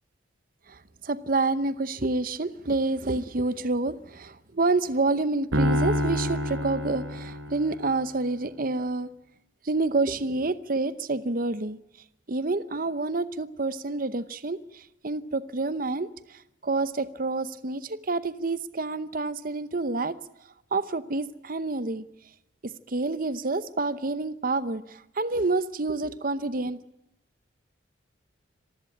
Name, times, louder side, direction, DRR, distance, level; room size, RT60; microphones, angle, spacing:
voice 1, 0.7-9.1 9.6-11.8 12.3-20.2 20.7-22.0 22.6-26.8, right 3 dB, 45° right, 14 dB, 0.8 m, -28 dB
Piano, 5.5-7.9, left 1 dB, 85° right, 6.0 m, -27 dB
26.5 x 16.0 x 9.9 m, 0.86 s
head